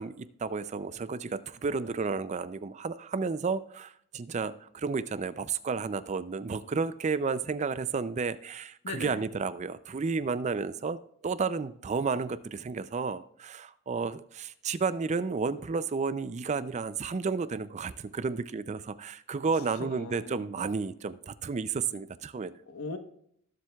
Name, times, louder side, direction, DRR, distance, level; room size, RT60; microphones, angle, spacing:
voice 1, 0.0-11.0 11.2-22.5, right 4 dB, 30° right, 14 dB, 0.4 m, -32 dB
voice 2, 8.8-9.2 19.8-20.5 22.7-23.0, left 3 dB, 85° left, 7 dB, 1.1 m, -39 dB
19.0 x 7.4 x 2.3 m, 0.69 s
head